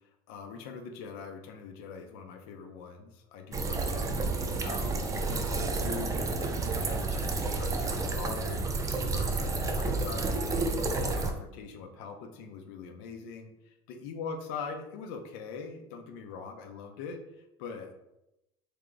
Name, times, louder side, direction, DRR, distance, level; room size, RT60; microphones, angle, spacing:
voice 1, 0.3-17.9, left 5 dB, 75° left, 5 dB, 0.7 m, -42 dB
sound 1, 3.5-11.3, right 3 dB, 25° right, 0.5 m, -30 dB
3.4 x 2.8 x 3.8 m, 0.88 s
supercardioid pair, 105°, 13 cm